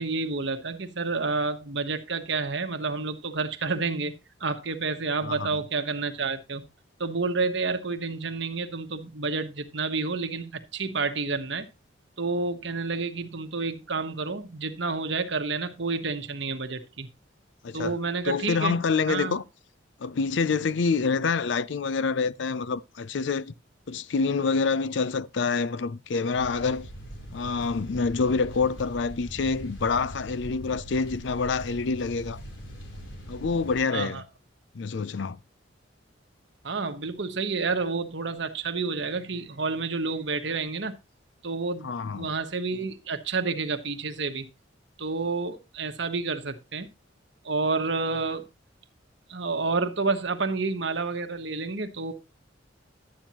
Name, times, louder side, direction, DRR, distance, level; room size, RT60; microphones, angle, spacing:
voice 1, 0.0-6.6 7.0-11.7 12.2-17.1 17.7-18.8 19.1-19.4 33.9-34.2 36.6-41.0 41.4-44.4 45.0-46.9 47.4-48.5 49.3-52.1, right 4 dB, 65° right, 1.2 m, -29 dB
voice 2, 17.6-18.0 18.2-19.4 20.0-23.5 23.9-26.9 27.3-32.4 33.3-34.2 34.7-35.4 41.8-42.3, left 4 dB, 65° left, 0.5 m, -27 dB
sound 1, 26.3-33.8, equal, 85° left, 3.4 m, -42 dB
11.5 x 8.9 x 2.9 m
head